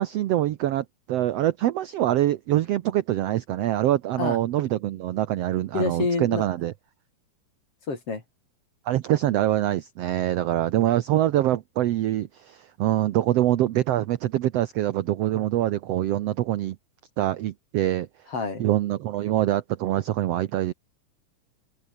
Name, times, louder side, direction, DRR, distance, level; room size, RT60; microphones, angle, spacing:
voice 1, 0.0-6.7 8.9-16.8 17.2-18.1 18.6-20.7, right 13 dB, 75° right, 1.5 m, -24 dB
voice 2, 5.7-6.4 7.9-8.2 15.3-15.4 18.3-18.6, left 4 dB, 45° left, 5.5 m, -27 dB
omnidirectional pair, 3.8 m